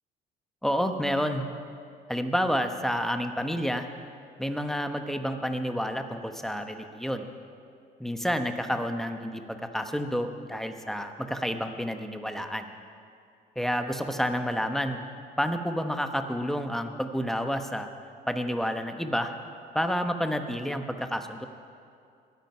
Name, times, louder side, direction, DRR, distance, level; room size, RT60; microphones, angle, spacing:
voice 1, 0.6-1.5 2.1-3.9 4.4-7.3 8.0-12.7 13.6-15.0 15.4-17.9 18.3-19.4 19.7-21.5, equal, ahead, 6 dB, 1.0 m, -29 dB
22.0 x 9.2 x 5.6 m, 2.5 s
cardioid pair, 110°, 17 cm